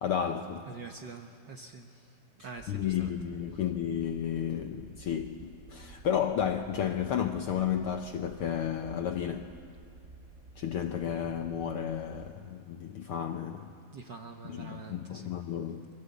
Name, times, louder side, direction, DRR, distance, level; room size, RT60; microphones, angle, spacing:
voice 1, 0.0-0.7 2.7-9.5 10.6-13.7 14.4-15.9, left 9 dB, 70° left, 1.4 m, -32 dB
voice 2, 0.7-2.1 2.4-3.1 13.9-15.3, right 4 dB, 55° right, 1.3 m, -45 dB
sound 1, 2.6-12.3, right 3 dB, 90° right, 0.6 m, -52 dB
27.5 x 23.0 x 8.3 m
omnidirectional pair, 3.3 m